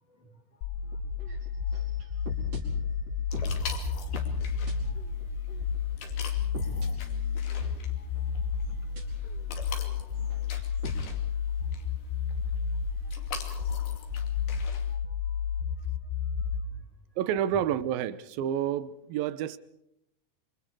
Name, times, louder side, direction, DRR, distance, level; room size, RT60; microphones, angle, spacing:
voice 1, 0.1-2.1 2.5-3.3 4.1-5.0 5.6-5.7 6.4-6.5 7.7-8.3 8.6-9.1 9.3-9.6 10.2-10.3 10.9-11.0 11.6-11.8 13.0-13.4 14.3-14.4 14.9-15.4 16.4-16.5, left 1 dB, 25° left, 3.6 m, -60 dB
sound 1, 0.6-16.6, left 7 dB, 90° left, 5.2 m, -31 dB
sound 2, 0.8-8.2 8.9-9.5 9.8-11.0, right 2 dB, 55° right, 6.2 m, -40 dB
sound 3, 3.3-14.9, left 6 dB, 65° left, 4.4 m, -45 dB
voice 2, 17.2-19.6, right 10 dB, 70° right, 2.6 m, -29 dB
27.0 x 25.5 x 4.9 m
omnidirectional pair, 4.7 m